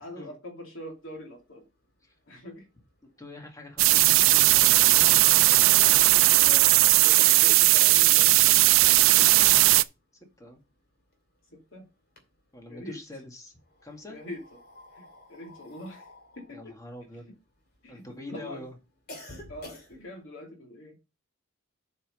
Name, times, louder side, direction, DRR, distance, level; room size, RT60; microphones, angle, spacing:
voice 1, 0.0-1.7 2.3-2.7 6.0-9.6 11.5-11.9 12.7-13.0 14.1-14.6 14.9-16.1 16.3-16.8 17.8-18.7 19.5-21.0, left 1 dB, 75° left, 2.6 m, -44 dB
long spooky exhale, 1.5-1.6 1.8-1.9 2.2-9.7 10.0-11.6 11.9-12.9 13.6-18.1 18.5-20.2, left 2 dB, 50° left, 2.6 m, -48 dB
voice 2, 3.2-7.3 9.1-9.5 10.4-10.6 12.5-13.5 13.8-14.2 16.5-17.3 17.9-18.7, left 2 dB, 15° left, 1.9 m, -45 dB
sound 1, 3.8-9.8, right 17 dB, 90° right, 0.4 m, -18 dB
8.0 x 5.7 x 5.3 m
head